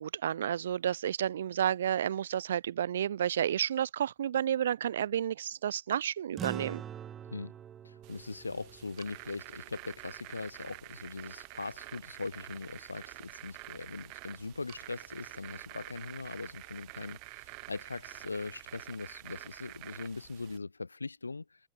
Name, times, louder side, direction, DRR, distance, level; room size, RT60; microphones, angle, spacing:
voice 1, 0.0-6.8, right 10 dB, 65° right, 1.1 m, -31 dB
sound 1, 6.4-11.0, right 9 dB, 25° right, 3.4 m, -45 dB
voice 2, 7.8-21.6, left 3 dB, 80° left, 7.0 m, -41 dB
sound 2, 8.0-20.6, right 37 dB, 45° right, 5.3 m, -48 dB
figure-of-eight pair, 90°, 0 cm